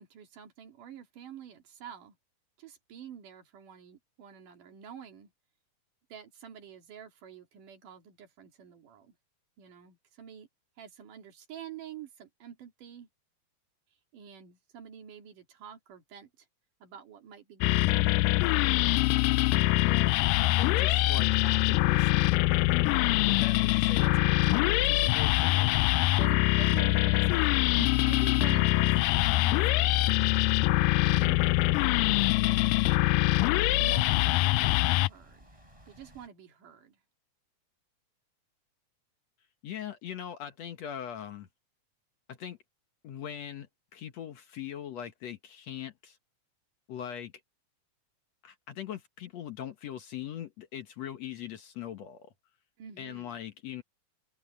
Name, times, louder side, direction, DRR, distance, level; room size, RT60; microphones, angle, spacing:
voice 1, 0.0-2.2 2.6-5.3 6.1-9.2 9.6-10.5 10.8-13.1 14.1-16.5 16.8-18.2 26.2-27.5 27.7-31.4 32.1-32.8 33.2-35.6 35.9-37.0 52.8-53.3, right 9 dB, 75° right, 4.0 m, -47 dB
sound 1, 17.6-35.1, left 19 dB, 85° left, 2.2 m, -24 dB
voice 2, 19.8-22.5 22.7-25.8 39.6-41.5 42.3-42.6 43.0-43.7 43.9-46.2 46.9-47.3 48.4-52.3 53.0-53.8, left 10 dB, 60° left, 2.1 m, -40 dB
sound 2, 27.9-36.3, equal, 10° right, 8.0 m, -56 dB
omnidirectional pair, 3.8 m